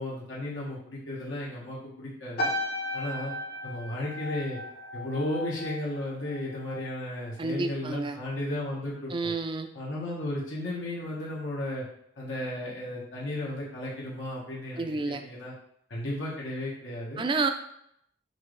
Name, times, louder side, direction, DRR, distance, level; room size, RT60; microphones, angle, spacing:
voice 1, 0.0-2.5 2.9-3.3 3.6-4.6 4.9-9.3 9.7-11.8 12.2-15.5 15.9-17.2, left 1 dB, 85° left, -5 dB, 1.4 m, -34 dB
sound 1, 2.4-7.0 7.3-7.7, left 1 dB, 55° left, 0.8 m, -35 dB
voice 2, 7.4-8.2 9.1-9.7 14.8-15.2 17.2-17.5, right 3 dB, 25° right, 7 dB, 0.4 m, -29 dB
5.8 x 2.6 x 3.2 m, 0.72 s
head